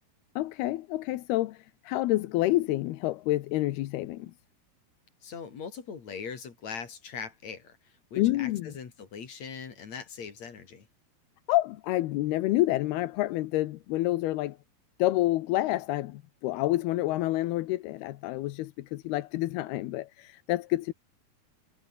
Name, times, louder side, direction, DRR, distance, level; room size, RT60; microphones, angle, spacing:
voice 1, 0.4-4.3 8.2-8.7 11.5-14.6 15.0-20.9, left 16 dB, 85° left, 3.0 m, -28 dB
voice 2, 5.2-10.9, left 6 dB, 50° left, 3.8 m, -41 dB
omnidirectional pair, 4.4 m